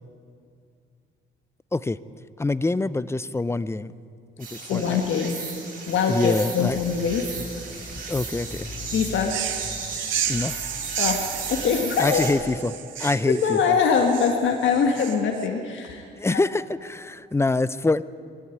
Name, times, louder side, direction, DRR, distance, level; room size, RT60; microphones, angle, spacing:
voice 1, 2.4-3.9 4.4-5.0 6.1-6.8 8.1-8.7 10.3-10.6 12.0-13.8 16.2-18.0, left 2 dB, 15° left, 17 dB, 0.5 m, -25 dB
sound 1, 4.4-12.3, right 4 dB, 45° right, 7.1 m, -36 dB
voice 2, 4.7-5.4 5.9-7.2 8.9-9.4 11.0-12.2 13.0-16.4, left 6 dB, 75° left, 4 dB, 1.7 m, -23 dB
sound 2, 6.6-12.6, left 2 dB, 30° left, 2.6 m, -41 dB
sound 3, 9.2-15.5, right 10 dB, 75° right, 1.4 m, -32 dB
21.5 x 13.5 x 9.3 m, 2.3 s
cardioid pair, 90°, 20 cm